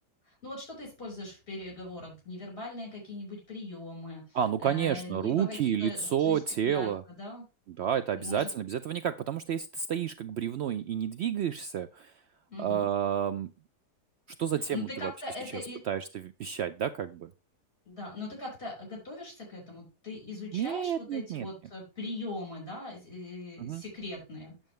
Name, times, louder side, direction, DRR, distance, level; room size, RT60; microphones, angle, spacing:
voice 1, 0.3-6.9 7.2-7.4 8.1-8.5 12.5-12.9 14.7-15.8 17.9-24.6, left 2 dB, 40° left, -1 dB, 5.4 m, -40 dB
voice 2, 4.3-7.0 7.7-12.1 12.6-13.5 14.4-15.1 15.9-17.3 20.5-21.5 23.6-23.8, right 9 dB, 85° right, 11 dB, 0.5 m, -30 dB
8.9 x 7.3 x 3.2 m, 0.29 s
omnidirectional pair, 1.7 m